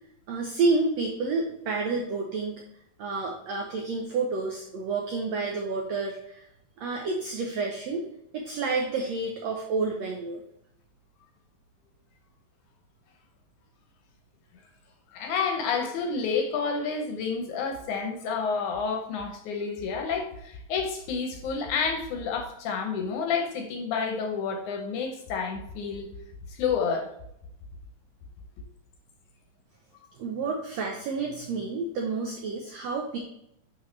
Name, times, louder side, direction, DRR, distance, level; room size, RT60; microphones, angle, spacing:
voice 1, 0.3-2.6 3.0-6.4 6.8-8.1 8.3-10.4 30.2-33.2, right 3 dB, 80° right, 1 dB, 1.5 m, -29 dB
voice 2, 15.1-26.1 26.5-27.1, left 5 dB, 75° left, 4 dB, 2.0 m, -29 dB
11.0 x 4.7 x 3.2 m, 0.78 s
omnidirectional pair, 4.0 m